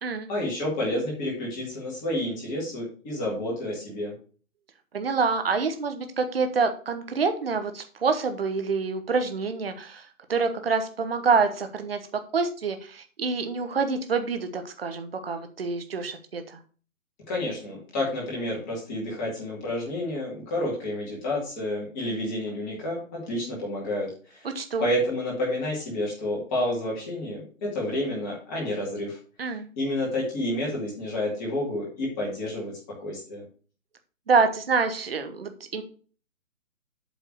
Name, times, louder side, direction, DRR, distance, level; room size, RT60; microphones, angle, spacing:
voice 1, 0.3-4.1 17.3-24.5 24.8-32.7 33.0-33.4, left 1 dB, 15° left, -4 dB, 2.2 m, -30 dB
voice 2, 4.9-12.0 12.3-16.6 24.4-24.9 29.4-29.7 34.3-35.8, right 4 dB, 45° right, 7 dB, 1.1 m, -27 dB
8.1 x 3.7 x 6.1 m, 0.40 s
hypercardioid pair, 170°, 41 cm